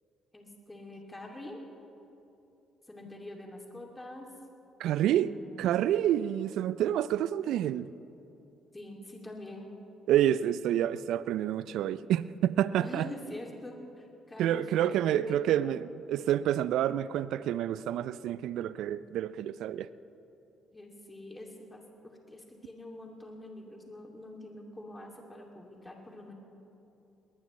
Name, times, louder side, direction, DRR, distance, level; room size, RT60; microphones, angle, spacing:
voice 1, 0.3-1.6 2.9-4.3 5.0-5.8 8.7-9.7 12.8-15.8 20.7-26.3, left 1 dB, 20° left, 0 dB, 2.6 m, -45 dB
voice 2, 4.8-5.3 5.6-7.9 10.1-13.1 14.4-19.9, right 11 dB, 70° right, 17 dB, 0.4 m, -28 dB
22.5 x 19.5 x 3.2 m, 2.8 s
hypercardioid pair, 50°, 0 cm